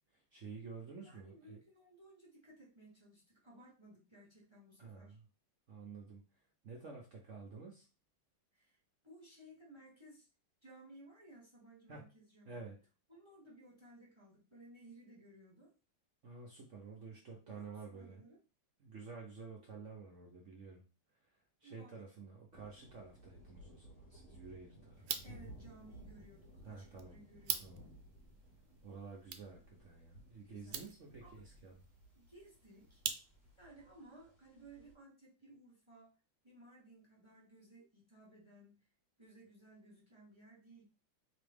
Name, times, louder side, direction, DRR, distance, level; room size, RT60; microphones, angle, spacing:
voice 1, 0.1-1.6 4.8-5.2 5.7-7.9 11.9-12.0 12.4-12.8 16.2-18.2 18.8-20.9 21.1-25.2 26.6-27.2 27.6-27.8 28.8-31.9, right 4 dB, 60° right, -1 dB, 0.8 m, -51 dB
voice 2, 1.0-5.2 8.5-8.8 9.0-10.3 10.6-12.7 13.1-15.7 17.5-18.4 21.6-22.0 25.2-27.8 30.4-30.8 31.2-31.4 32.1-33.0 33.6-36.1 36.4-38.8 39.2-40.8, right 1 dB, 20° right, -1 dB, 0.7 m, -59 dB
sound 1, 22.5-34.9, right 1 dB, 50° left, 0.8 m, -58 dB
sound 2, 24.9-33.7, right 9 dB, 85° right, 1.4 m, -46 dB
4.1 x 3.0 x 3.4 m, 0.33 s
omnidirectional pair, 2.2 m